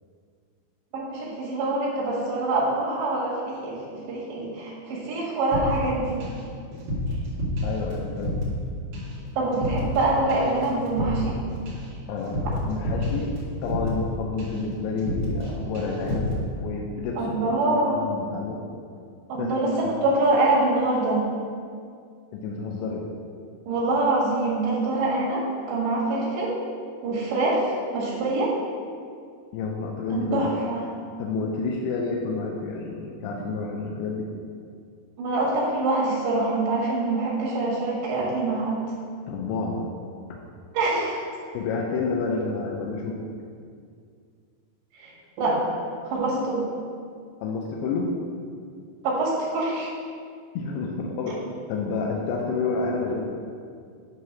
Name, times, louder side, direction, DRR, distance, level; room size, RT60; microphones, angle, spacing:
voice 1, 0.9-6.2 9.4-11.3 17.2-18.0 19.3-21.2 23.7-26.6 27.0-28.5 30.1-30.9 35.2-38.8 40.7-41.2 44.9-45.1 45.4-45.6 46.1-46.6 49.0-49.9, right 2 dB, 85° right, -5 dB, 4.1 m, -25 dB
sound 1, 5.5-6.4 6.7-8.7 8.9-9.2 9.5-10.0 10.3-14.1 14.4-14.7 15.0-15.5 15.8-16.4, left 1 dB, 65° right, 3.7 m, -29 dB
voice 2, 7.6-8.4 12.1-13.3 13.6-17.4 17.7-18.6 19.4-19.6 19.8-20.0 22.3-23.0 29.5-30.5 31.2-34.3 39.3-39.8 40.3-40.4 41.5-43.2 47.4-48.1 50.6-51.4 51.7-53.2, left 4 dB, 80° left, -1 dB, 2.5 m, -29 dB
9.8 x 3.3 x 6.1 m, 2.2 s
omnidirectional pair, 4.9 m